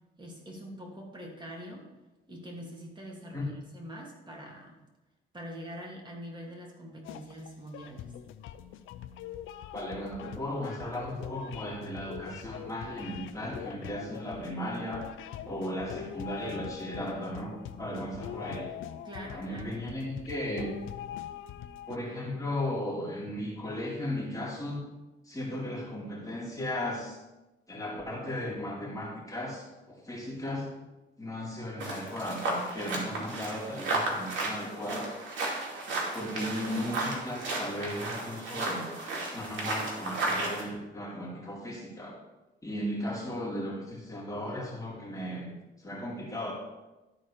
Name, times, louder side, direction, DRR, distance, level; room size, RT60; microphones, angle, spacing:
voice 1, 0.2-1.9 2.3-4.8 5.3-8.1 19.0-19.8, equal, 25° right, -1 dB, 2.6 m, -44 dB
sound 1, 7.0-22.0, left 10 dB, 85° left, 0.6 m, -43 dB
voice 2, 9.7-15.0 15.4-18.7 19.2-20.7 21.9-24.8 25.2-27.2 27.7-30.8 31.2-35.1 36.1-42.1 42.6-46.5, left 1 dB, 15° left, -4 dB, 2.4 m, -36 dB
sound 2, 31.8-40.6, right 2 dB, 75° right, 2.5 m, -34 dB
12.5 x 4.3 x 4.9 m, 1.0 s
cardioid pair, 90°, 20 cm